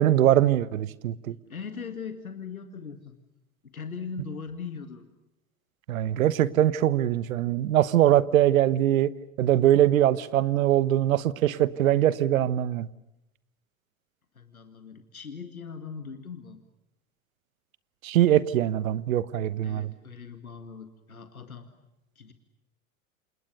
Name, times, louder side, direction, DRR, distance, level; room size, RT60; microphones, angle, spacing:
voice 1, 0.0-1.4 5.9-9.1 9.4-12.9 18.0-19.9, right 12 dB, 75° right, 1.2 m, -22 dB
voice 2, 1.5-3.2 3.6-5.1 14.3-16.6 19.6-21.7 22.2-22.3, left 5 dB, 90° left, 2.1 m, -40 dB
28.5 x 28.0 x 6.9 m
hypercardioid pair, 85°, 42 cm